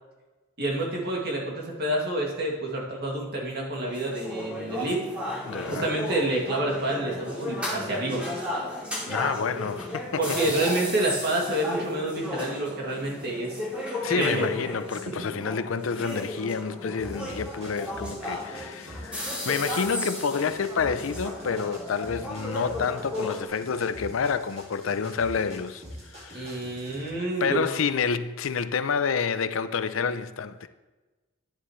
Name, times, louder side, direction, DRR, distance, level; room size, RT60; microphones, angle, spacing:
voice 1, 0.6-5.0 5.7-8.2 10.2-13.6 14.1-14.5 26.3-27.6, right 1 dB, 55° right, 2.3 m, -28 dB
sound 1, 3.8-23.4, left 1 dB, 5° right, 2.5 m, -34 dB
voice 2, 5.5-5.9 9.1-10.4 14.0-26.6 27.2-30.7, left 6 dB, 85° left, 0.5 m, -29 dB
sound 2, 17.0-27.1, equal, 30° right, 2.3 m, -45 dB
10.5 x 10.0 x 3.2 m
head